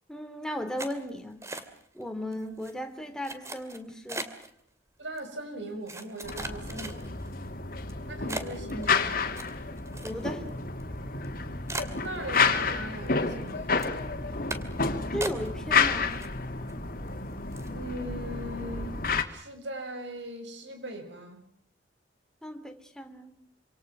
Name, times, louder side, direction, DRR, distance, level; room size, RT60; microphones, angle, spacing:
voice 1, 0.1-1.4 1.9-4.3 10.0-10.4 15.1-16.2 22.4-23.4, equal, 5° left, 3.3 m, -36 dB
sound 1, 0.8-2.0 2.3-2.7 3.2-4.5 5.2-5.3 5.9-7.3 7.8-7.9 8.3-10.5 10.8-10.9 11.2-11.3 11.7-12.7 13.1-13.5 13.8-14.0 14.5-14.8 15.2-15.8 16.1-16.7 17.1-17.2 17.5-17.8, right 2 dB, 15° right, 2.7 m, -38 dB
voice 2, 5.0-7.2 8.1-9.2 12.0-13.8 17.7-19.0 19.3-21.4, right 1 dB, 75° right, 7.0 m, -39 dB
sound 2, 6.2-19.2, left 4 dB, 50° left, 2.7 m, -30 dB
27.5 x 27.0 x 6.2 m
head